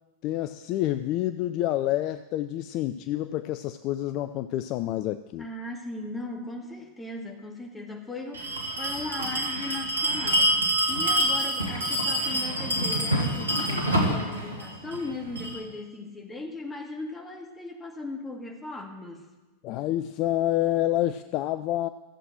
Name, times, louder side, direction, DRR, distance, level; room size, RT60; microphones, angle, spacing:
voice 1, 0.2-5.5 19.6-21.9, left 13 dB, 40° left, 11 dB, 0.4 m, -28 dB
voice 2, 5.4-19.3, left 2 dB, 10° left, 2 dB, 1.9 m, -38 dB
Bell, 8.3-15.6, right 1 dB, 80° right, 2.1 m, -26 dB
14.0 x 7.8 x 7.6 m, 1.1 s
figure-of-eight pair, 90°, 0 cm